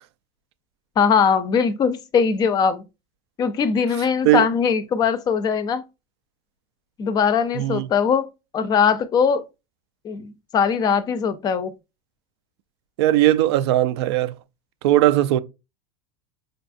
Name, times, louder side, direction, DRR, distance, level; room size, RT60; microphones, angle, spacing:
voice 1, 1.0-2.8 3.4-5.8 7.0-9.5 10.0-11.7, left 6 dB, 30° left, 0.4 m, -21 dB
voice 2, 7.6-7.9 13.0-14.3 14.8-15.4, right 14 dB, 80° right, 0.4 m, -18 dB
5.1 x 2.3 x 2.5 m
supercardioid pair, 130°, 14 cm